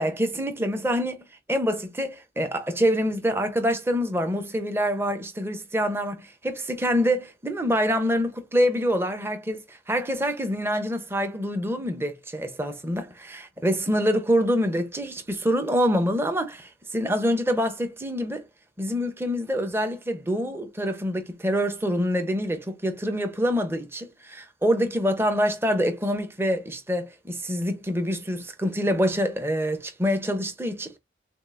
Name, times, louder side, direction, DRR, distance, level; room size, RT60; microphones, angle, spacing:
voice 1, 0.0-18.5 18.8-31.0, equal, 15° right, 0.7 m, -26 dB
6.5 x 2.4 x 2.4 m
head